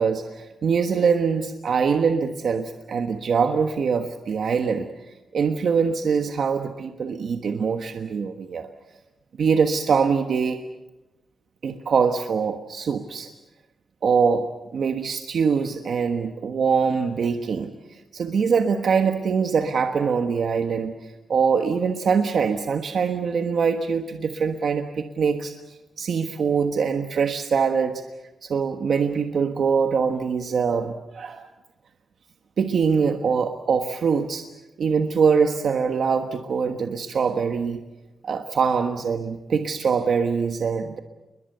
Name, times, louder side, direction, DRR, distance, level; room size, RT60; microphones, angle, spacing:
voice 1, 0.0-4.9 5.3-8.7 9.4-10.6 11.6-13.3 14.0-14.5 14.7-28.0 28.4-31.5 32.6-34.5 34.8-37.8 38.2-41.0, right 6 dB, 70° right, 6 dB, 1.3 m, -23 dB
29.5 x 22.0 x 6.8 m, 1.0 s
wide cardioid pair, 115°, 0 cm